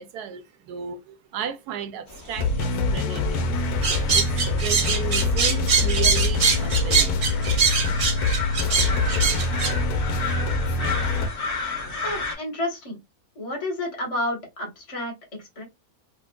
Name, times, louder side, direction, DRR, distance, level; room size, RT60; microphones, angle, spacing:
voice 1, 0.0-3.6 3.9-7.3, right 8 dB, 90° right, 1.2 m, -34 dB
sound 1, 2.1-12.4, left 3 dB, 45° left, 1.8 m, -34 dB
sound 2, 2.4-11.3, left 3 dB, 80° left, 1.2 m, -24 dB
sound 3, 3.8-9.7, right 6 dB, 50° right, 1.0 m, -22 dB
voice 2, 12.0-13.0 13.3-15.6, left 1 dB, 25° left, 1.3 m, -30 dB
4.2 x 2.5 x 2.2 m
omnidirectional pair, 1.6 m